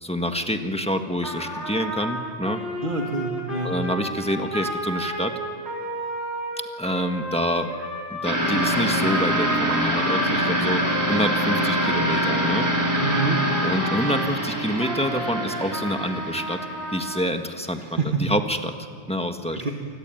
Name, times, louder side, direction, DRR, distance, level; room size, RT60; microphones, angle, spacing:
voice 1, 0.0-2.6 3.6-5.3 6.8-7.7 8.1-12.7 13.6-16.6 16.9-18.7 19.1-19.6, equal, 5° left, 5 dB, 1.6 m, -27 dB
Trumpet, 1.2-14.3 14.8-17.3, right 1 dB, 70° right, 4.4 m, -32 dB
voice 2, 2.8-3.7 13.0-13.4 17.8-18.2 19.5-19.7, right 4 dB, 45° right, 1 dB, 2.0 m, -26 dB
sound 1, 8.2-17.3, equal, 15° right, 4.2 m, -25 dB
28.0 x 20.5 x 9.2 m, 2.1 s
omnidirectional pair, 1.1 m